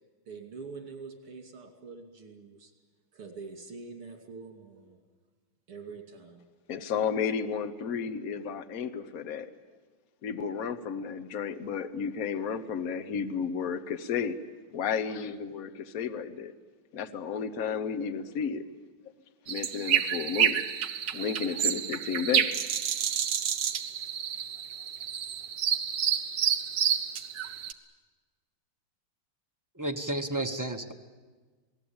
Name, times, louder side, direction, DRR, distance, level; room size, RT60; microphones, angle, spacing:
voice 1, 0.3-2.7 3.1-5.0 5.7-6.5, right 4 dB, 90° right, 5 dB, 3.4 m, -45 dB
voice 2, 6.7-9.5 10.2-14.4 14.7-16.5 16.9-18.6 19.5-20.6 21.1-22.5, left 6 dB, 50° left, 10 dB, 1.3 m, -32 dB
sound 1, 19.5-27.7, right 9 dB, 60° right, 1.5 m, -29 dB
voice 3, 29.8-30.9, right 1 dB, 30° right, 4 dB, 0.3 m, -32 dB
27.5 x 18.5 x 8.8 m, 1.4 s
omnidirectional pair, 2.4 m